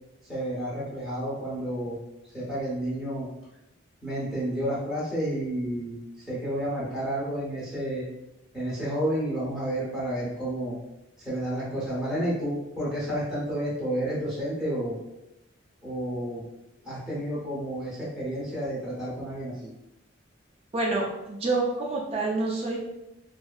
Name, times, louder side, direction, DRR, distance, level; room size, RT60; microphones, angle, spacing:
voice 1, 0.3-2.0 2.3-3.3 4.0-8.0 8.5-10.8 11.2-15.0 15.8-16.4 16.8-19.5, right 1 dB, 5° right, -10 dB, 0.7 m, -30 dB
voice 2, 20.7-22.8, right 3 dB, 30° right, -2 dB, 0.3 m, -27 dB
2.6 x 2.3 x 2.2 m, 0.91 s
head